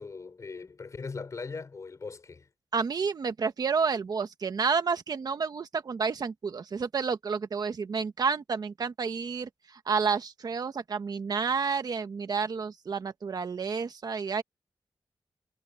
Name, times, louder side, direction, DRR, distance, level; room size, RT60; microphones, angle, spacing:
voice 1, 0.0-2.5, left 4 dB, 40° left, 5.3 m, -40 dB
voice 2, 2.7-14.4, right 5 dB, 55° right, 1.5 m, -30 dB
wide cardioid pair, 180°, 8 cm